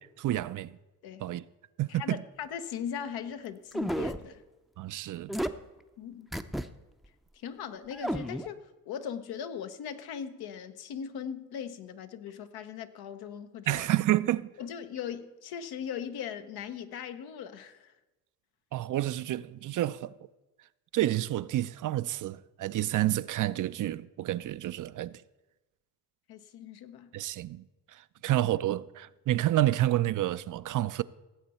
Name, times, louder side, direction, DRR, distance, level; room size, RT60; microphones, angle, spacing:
voice 1, 0.2-0.7 1.2-1.4 1.8-2.2 4.8-5.4 13.7-14.5 18.7-20.1 20.9-25.1 27.1-27.6 28.2-31.0, right 14 dB, 55° right, 0.5 m, -29 dB
voice 2, 1.9-4.4 6.0-6.3 7.3-13.9 14.6-17.9 26.3-27.1, left 8 dB, 80° left, 1.0 m, -39 dB
sound 1, 3.7-4.2 5.3-5.5 6.3-6.7 7.0-7.1 7.9-8.5, equal, ahead, 0.6 m, -31 dB
17.0 x 7.7 x 4.2 m
supercardioid pair, 70°, 37 cm